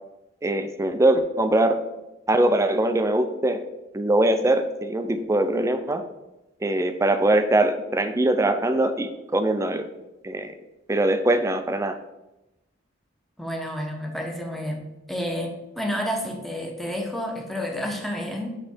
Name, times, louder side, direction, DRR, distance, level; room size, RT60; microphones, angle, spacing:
voice 1, 0.4-1.8 2.3-3.6 3.9-6.0 6.6-9.9 10.2-10.5 10.9-11.9, right 1 dB, 15° right, 9 dB, 0.4 m, -22 dB
voice 2, 13.4-14.8 15.1-18.5, equal, ahead, 1 dB, 0.9 m, -30 dB
9.3 x 3.2 x 4.3 m, 0.97 s
head